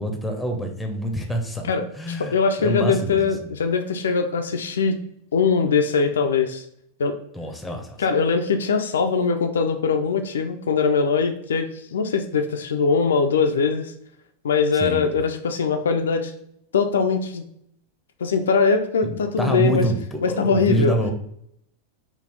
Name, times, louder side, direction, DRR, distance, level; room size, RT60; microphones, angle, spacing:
voice 1, 0.0-2.3 2.6-3.2 7.3-8.0 14.8-15.1 19.0-21.1, right 1 dB, 5° left, 3 dB, 0.6 m, -26 dB
voice 2, 1.6-5.0 5.3-6.6 7.0-7.2 8.0-13.9 14.4-16.3 16.7-17.4 18.2-19.9 20.2-21.0, left 5 dB, 65° left, 6 dB, 0.3 m, -21 dB
4.0 x 2.4 x 3.3 m, 0.72 s
figure-of-eight pair, 90°, 0 cm